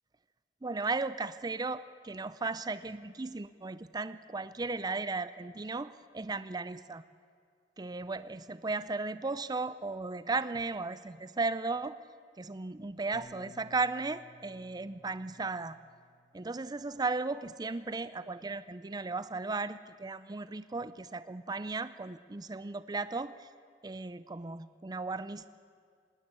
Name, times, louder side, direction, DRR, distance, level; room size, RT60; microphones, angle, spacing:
voice 1, 0.6-7.0 7.8-12.0 12.4-15.8 16.3-23.5 23.8-25.5, right 3 dB, 20° right, 14 dB, 0.5 m, -36 dB
Bass guitar, 13.1-17.6 18.4-19.4, left 1 dB, 35° left, 1.5 m, -59 dB
19.5 x 17.5 x 9.7 m, 2.1 s
head